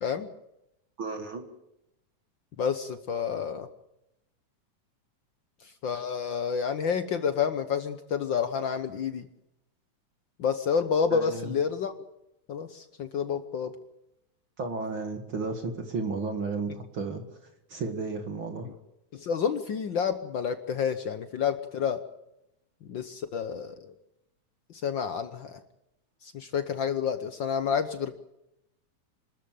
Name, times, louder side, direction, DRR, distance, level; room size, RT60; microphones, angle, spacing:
voice 1, 1.0-1.4 11.1-11.5 14.6-17.2 17.7-18.7, right 4 dB, 45° right, 6 dB, 2.4 m, -33 dB
voice 2, 2.6-3.7 5.8-9.3 10.4-11.9 12.5-13.7 19.1-22.0 22.9-23.9 24.7-25.6 26.2-28.2, left 7 dB, 75° left, 10 dB, 1.0 m, -29 dB
26.0 x 13.5 x 9.1 m, 0.87 s
omnidirectional pair, 3.5 m